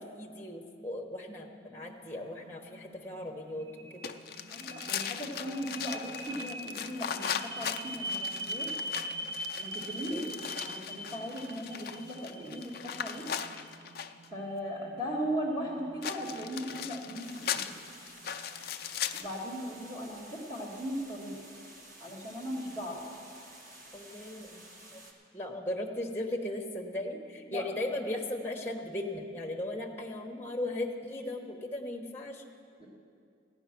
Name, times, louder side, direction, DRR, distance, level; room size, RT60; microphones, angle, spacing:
voice 1, 0.1-4.1 10.1-10.3 23.9-24.6 24.9-25.0 25.3-32.4, left 1 dB, 10° left, 0 dB, 1.0 m, -37 dB
sound 1, 1.2-19.3, equal, 70° right, 1.0 m, -43 dB
sound 2, 4.0-14.3 16.0-19.4, left 8 dB, 50° left, 0.4 m, -39 dB
voice 2, 4.5-8.7 9.6-10.3 10.6-13.3 14.3-17.6 19.1-21.3 22.0-23.0 27.5-27.7 32.8-32.9, equal, 30° right, -6 dB, 1.9 m, -38 dB
sound 3, 17.2-25.1, right 1 dB, 45° right, 1.4 m, -52 dB
15.0 x 9.8 x 6.0 m, 2.4 s
head